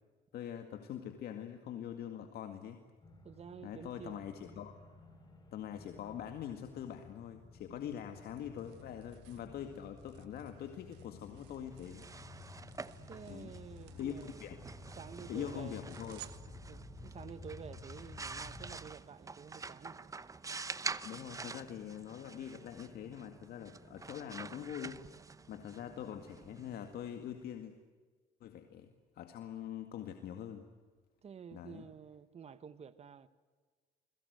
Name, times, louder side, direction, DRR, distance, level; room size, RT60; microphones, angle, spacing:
voice 1, 0.3-2.8 3.6-4.7 5.5-12.1 13.3-13.5 14.0-14.6 15.3-16.2 21.0-25.0 25.5-27.7 28.4-28.9 29.1-30.7 31.5-31.8, left 9 dB, 65° left, 2.1 m, -44 dB
sound 1, 3.0-18.7, left 3 dB, 25° left, 7.0 m, -53 dB
voice 2, 3.2-4.3 7.7-7.8 13.1-14.4 14.9-15.8 16.7-20.0 31.2-33.3, right 7 dB, 40° right, 1.5 m, -50 dB
sound 2, 7.7-17.2, right 15 dB, 90° right, 1.4 m, -60 dB
sound 3, 11.7-27.4, right 4 dB, 20° right, 0.9 m, -47 dB
29.5 x 21.5 x 8.1 m
cardioid pair, 110°, 17 cm